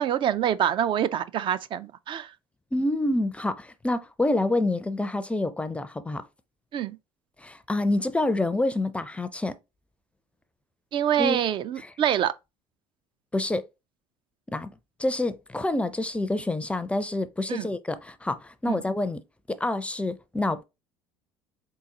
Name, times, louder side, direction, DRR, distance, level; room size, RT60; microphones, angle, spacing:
voice 1, 0.0-2.3 6.7-7.0 10.9-12.3 17.5-17.7 18.7-18.8, right 10 dB, 45° right, 0.4 m, -26 dB
voice 2, 2.7-6.2 7.4-9.5 11.2-11.4 11.8-11.9 13.3-13.6 14.5-14.7 15.0-19.2 19.5-20.6, left 2 dB, 10° left, 0.5 m, -27 dB
4.0 x 3.8 x 2.8 m
hypercardioid pair, 75°, 12 cm